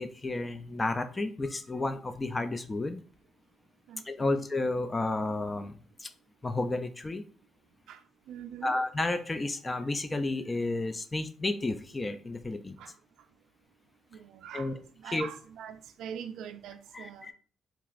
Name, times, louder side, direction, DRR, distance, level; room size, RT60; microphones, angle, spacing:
voice 1, 0.0-3.0 4.1-5.7 6.0-6.1 6.4-7.2 8.6-12.7 14.5-14.7 15.1-15.3 16.9-17.3, left 2 dB, 25° left, 0.3 m, -31 dB
voice 2, 3.9-4.5 7.9-8.8 12.8-13.0 14.1-17.3, right 8 dB, 80° right, 0.3 m, -44 dB
3.4 x 2.9 x 2.4 m
cardioid pair, 90°, 0 cm